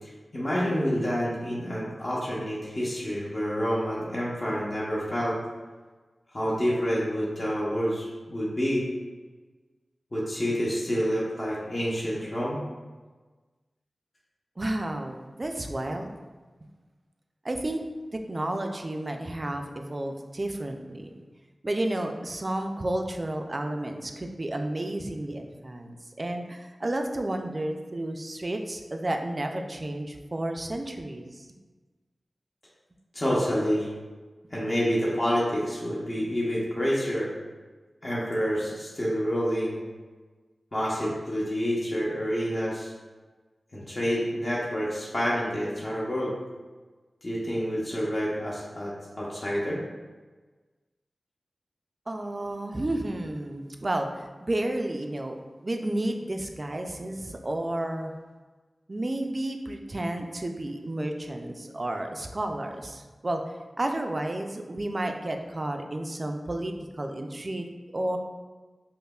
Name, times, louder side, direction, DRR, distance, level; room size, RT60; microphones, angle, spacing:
voice 1, 0.0-5.4 6.3-8.8 10.1-12.6 33.1-33.9 34.5-37.3 38.0-39.8 40.7-42.9 43.7-46.3 47.2-49.8, equal, 40° left, -7 dB, 0.6 m, -28 dB
voice 2, 14.6-16.1 17.4-17.8 18.1-21.1 21.6-31.5 52.1-55.4 55.6-58.1 58.9-63.4 63.8-68.2, right 1 dB, 40° right, 4 dB, 0.3 m, -31 dB
5.2 x 2.1 x 2.3 m, 1.3 s
wide cardioid pair, 80°, 0 cm